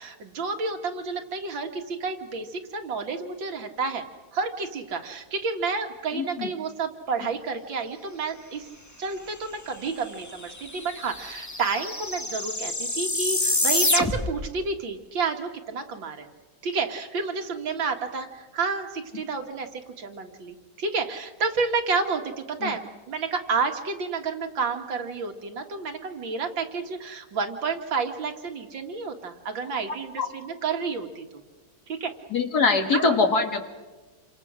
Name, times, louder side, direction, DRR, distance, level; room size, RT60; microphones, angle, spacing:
voice 1, 0.0-4.0 4.3-8.7 9.0-16.3 16.6-31.4 31.9-32.1 32.9-33.2, right 4 dB, 90° right, 5 dB, 2.6 m, -30 dB
voice 2, 6.1-6.5 22.6-22.7 29.9-30.3 32.3-33.6, left 4 dB, 55° left, 6 dB, 2.4 m, -23 dB
sound 1, 10.0-10.1 10.3-14.5, left 2 dB, 15° left, 0.6 m, -27 dB
28.0 x 26.0 x 6.3 m, 1.2 s
omnidirectional pair, 2.0 m